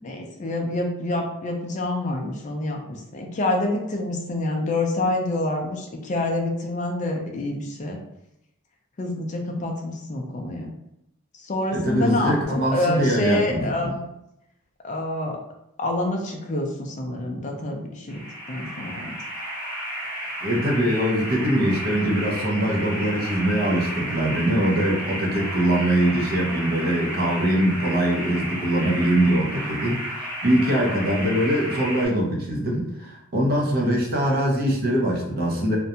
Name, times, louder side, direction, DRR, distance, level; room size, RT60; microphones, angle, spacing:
voice 1, 0.0-8.0 9.0-10.8 11.3-14.0 14.8-15.4 15.8-18.2 18.5-19.2, left 1 dB, 35° left, 2 dB, 0.4 m, -27 dB
voice 2, 11.7-13.9 20.4-35.8, right 1 dB, 40° right, -1 dB, 0.5 m, -23 dB
sound 1, 18.1-32.1, right 1 dB, 10° right, 0.7 m, -32 dB
2.5 x 2.2 x 2.7 m, 0.82 s
head